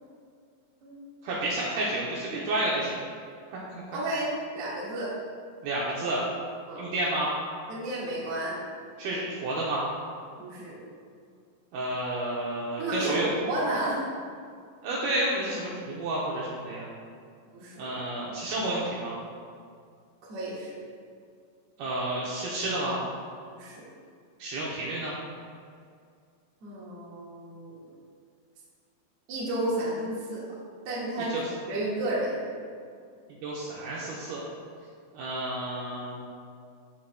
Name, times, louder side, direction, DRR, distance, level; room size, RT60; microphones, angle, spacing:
voice 1, 1.2-3.0 3.5-3.8 5.6-6.2 6.8-7.3 9.0-9.8 11.7-13.3 14.8-16.9 17.8-19.2 21.8-23.0 24.4-25.1 31.3-31.4 33.4-34.4 35.1-36.2, right 1 dB, 75° right, -6 dB, 2.4 m, -30 dB
voice 2, 3.9-5.1 6.7-6.9 7.7-8.6 10.4-10.7 12.8-14.0 17.5-17.9 20.2-20.8 23.5-23.8 26.6-27.8 29.3-30.5 30.8-31.3 31.7-32.5, right 1 dB, 55° right, -7 dB, 1.8 m, -32 dB
13.5 x 4.6 x 2.2 m, 2.2 s
omnidirectional pair, 5.0 m